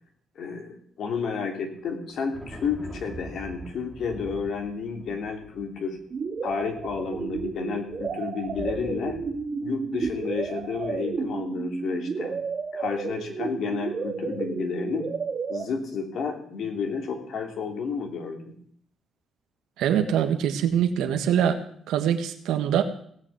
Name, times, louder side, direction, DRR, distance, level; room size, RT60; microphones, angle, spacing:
voice 1, 0.4-6.0 6.4-9.2 9.6-12.4 12.7-15.1 15.5-18.5, left 5 dB, 70° left, 4 dB, 2.8 m, -31 dB
Thunder, 1.7-11.2, right 1 dB, 5° right, 2.9 m, -45 dB
sound 1, 6.1-15.6, right 5 dB, 45° right, 1.7 m, -32 dB
voice 2, 19.8-22.8, right 9 dB, 85° right, 7 dB, 1.5 m, -24 dB
17.5 x 6.1 x 8.1 m, 0.62 s
cardioid pair, 90°, 0 cm